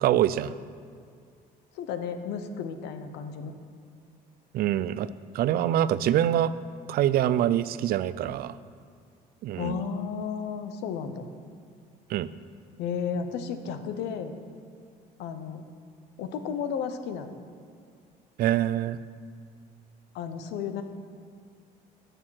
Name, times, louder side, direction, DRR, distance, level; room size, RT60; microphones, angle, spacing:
voice 1, 0.0-0.5 4.5-5.1 5.3-6.5 6.9-8.5 9.4-9.8 12.1-12.3 18.4-19.0, right 11 dB, 65° right, 16 dB, 0.4 m, -25 dB
voice 2, 1.7-3.5 9.6-11.3 12.8-14.3 15.2-15.6 16.2-17.3 20.1-20.8, left 6 dB, 85° left, 9 dB, 0.8 m, -33 dB
11.5 x 6.4 x 6.4 m, 2.2 s
cardioid pair, 110°, 17 cm